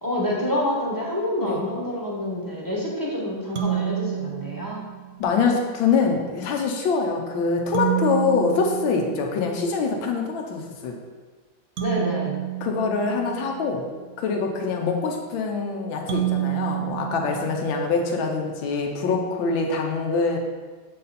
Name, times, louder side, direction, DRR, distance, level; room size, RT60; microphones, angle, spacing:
voice 1, 0.0-4.8 11.8-12.4, left 1 dB, 15° left, -5 dB, 1.0 m, -27 dB
sound 1, 3.5-5.2 7.7-9.8 11.8-13.9 16.1-18.1, right 14 dB, 60° right, 1.2 m, -29 dB
voice 2, 5.2-10.9 12.6-13.8 14.2-20.4, left 4 dB, 80° left, 2 dB, 1.6 m, -24 dB
7.5 x 4.2 x 4.1 m, 1.4 s
omnidirectional pair, 2.2 m